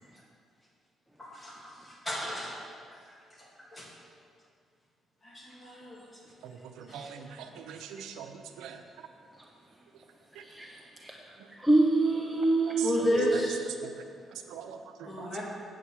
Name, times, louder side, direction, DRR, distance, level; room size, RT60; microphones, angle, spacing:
voice 1, 1.2-3.0 3.4-3.9 5.2-6.2 6.9-7.9 12.8-13.6 15.0-15.4, left 1 dB, 20° left, -4 dB, 2.4 m, -34 dB
voice 2, 6.8-7.3 7.6-8.8 13.8-13.9 14.5-15.4, right 7 dB, 90° right, 6 dB, 0.7 m, -43 dB
voice 3, 10.5-11.2 11.6-13.4, right 2 dB, 5° right, -1 dB, 0.8 m, -26 dB
8.4 x 8.2 x 4.7 m, 2.2 s
cardioid pair, 90°, 0 cm